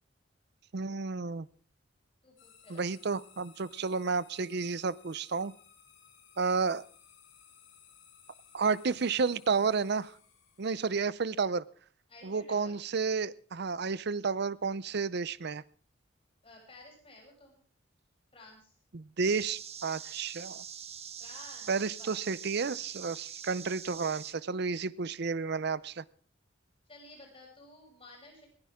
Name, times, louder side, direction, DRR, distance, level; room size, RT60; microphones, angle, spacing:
voice 1, 0.7-1.5 2.7-5.5 6.4-6.8 8.5-10.1 10.6-11.6 12.2-15.6 18.9-20.6 21.7-26.0, right 4 dB, 60° right, 19 dB, 0.6 m, -31 dB
voice 2, 2.2-2.8 12.1-12.8 16.4-17.5 18.3-18.7 21.2-22.2 26.9-28.5, left 2 dB, 30° left, -1 dB, 7.7 m, -53 dB
sound 1, 2.4-11.3, left 8 dB, 80° left, 5.6 m, -60 dB
sound 2, 19.2-24.3, right 8 dB, 35° right, 1.2 m, -44 dB
20.5 x 15.5 x 3.6 m, 0.43 s
head